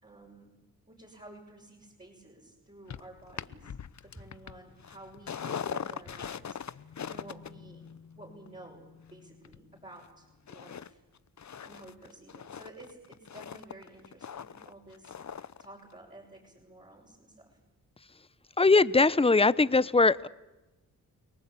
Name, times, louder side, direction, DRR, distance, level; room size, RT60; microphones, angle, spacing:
voice 1, 0.0-3.7 4.0-7.9 8.2-8.8 9.1-11.0 11.6-17.6, right 2 dB, 20° right, -4 dB, 6.8 m, -52 dB
sound 1, 2.9-10.1 10.5-10.9 11.2-15.7 15.9-16.0, left 7 dB, 50° left, 0.9 m, -42 dB
voice 2, 18.6-20.3, left 3 dB, 15° left, 18 dB, 0.9 m, -21 dB
30.0 x 19.0 x 8.5 m, 1.0 s
cardioid pair, 50°, 36 cm